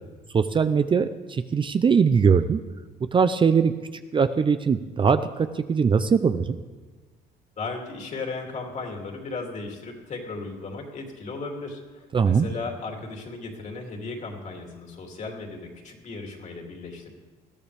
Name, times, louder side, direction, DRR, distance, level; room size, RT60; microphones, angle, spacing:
voice 1, 0.3-2.6 3.1-3.7 4.1-6.6 12.1-12.5, right 6 dB, 30° right, 10 dB, 0.6 m, -21 dB
voice 2, 7.6-17.1, left 3 dB, 45° left, 1 dB, 3.1 m, -36 dB
20.5 x 13.5 x 3.5 m, 1.4 s
cardioid pair, 110°, 17 cm